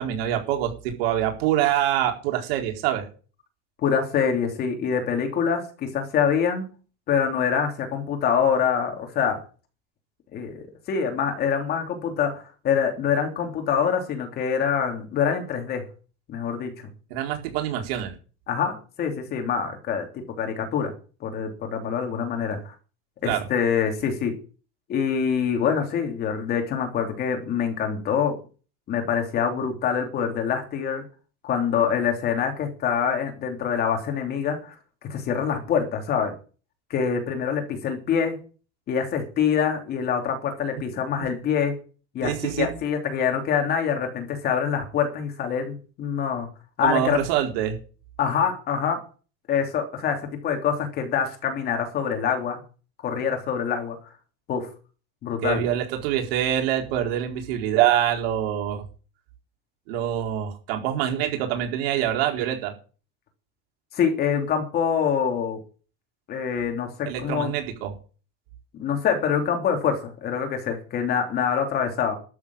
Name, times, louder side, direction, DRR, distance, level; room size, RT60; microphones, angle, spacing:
voice 1, 0.0-3.1 17.1-18.1 23.2-23.4 42.2-42.7 46.8-47.8 55.4-58.8 59.9-62.7 67.0-67.9, right 11 dB, 85° right, 3 dB, 4.1 m, -25 dB
voice 2, 3.8-6.6 7.1-9.4 10.3-15.8 16.3-16.9 18.5-20.9 21.2-22.7 23.2-24.3 24.9-28.4 28.9-31.0 31.4-34.7 35.1-36.3 36.9-38.4 38.9-41.8 42.1-46.5 46.8-47.2 48.2-49.0 49.5-52.6 53.0-54.0 54.5-54.7 55.2-55.6 63.9-65.6 66.3-67.5 68.7-72.1, left 7 dB, 30° left, 4 dB, 3.2 m, -25 dB
12.5 x 7.5 x 8.7 m, 0.37 s
cardioid pair, 175°, 29 cm